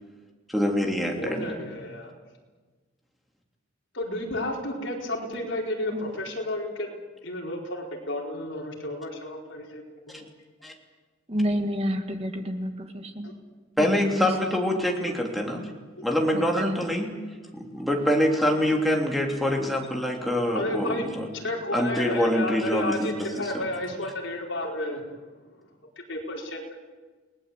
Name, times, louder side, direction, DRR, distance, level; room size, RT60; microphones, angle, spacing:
voice 1, 0.5-1.5 10.1-10.2 10.6-10.7 13.8-15.7 16.0-17.1 17.5-21.3 21.7-23.3 23.5-23.6, equal, ahead, 0 dB, 3.1 m, -25 dB
voice 2, 1.2-2.1 3.9-6.9 7.2-10.2 13.2-13.3 19.6-19.7 20.5-21.0 21.3-25.0 26.1-26.8, left 1 dB, 70° left, -1 dB, 4.6 m, -32 dB
voice 3, 11.3-13.3 13.8-14.3 16.3-16.8, equal, 30° right, 5 dB, 2.1 m, -29 dB
29.5 x 19.5 x 8.3 m, 1.4 s
head